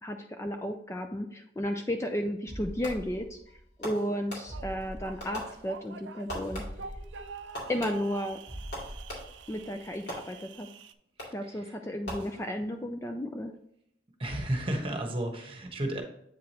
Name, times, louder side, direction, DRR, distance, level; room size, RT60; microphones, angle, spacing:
voice 1, 0.0-3.4 3.8-6.6 7.7-8.4 9.5-10.7 11.3-13.5, equal, 15° left, 5 dB, 0.4 m, -33 dB
sound 1, 2.5-3.8 4.1-4.2 4.5-5.8 6.1-6.2 6.5-8.2 8.5-9.8 10.1-10.2, equal, 35° left, 1.8 m, -44 dB
Fireworks, 2.8-3.3 3.8-4.8 5.2-6.0 6.3-7.0 7.5-9.5 10.1-10.7 11.2-11.6 12.0-12.8, equal, 65° left, 2.8 m, -42 dB
sound 2, 4.5-10.9, right 5 dB, 80° right, 0.5 m, -46 dB
voice 2, 11.2-11.7 14.2-16.0, right 1 dB, 30° right, 3 dB, 1.2 m, -33 dB
8.1 x 4.9 x 2.9 m, 0.73 s
head